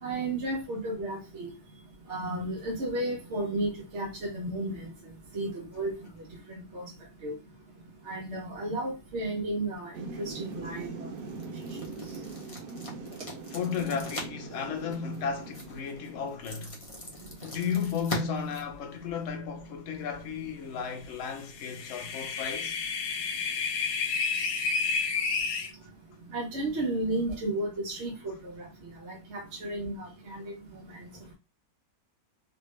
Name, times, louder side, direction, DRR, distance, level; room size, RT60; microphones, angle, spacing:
voice 1, 0.0-1.5 2.1-4.9 5.3-5.9 6.7-6.9 7.2-7.3 8.1-11.1 26.3-28.7 29.0-30.5 30.9-31.1, right 1 dB, 45° right, 1.0 m, -33 dB
Thunder / Rain, 9.9-16.4, right 4 dB, 65° right, 1.2 m, -42 dB
sound 1, 10.3-19.4, left 1 dB, 35° left, 0.5 m, -43 dB
voice 2, 13.5-16.8 17.4-22.8 31.1-31.3, left 6 dB, 60° left, 0.8 m, -34 dB
sound 2, 21.4-25.7, left 5 dB, 85° left, 1.3 m, -30 dB
3.2 x 2.6 x 3.1 m
omnidirectional pair, 1.9 m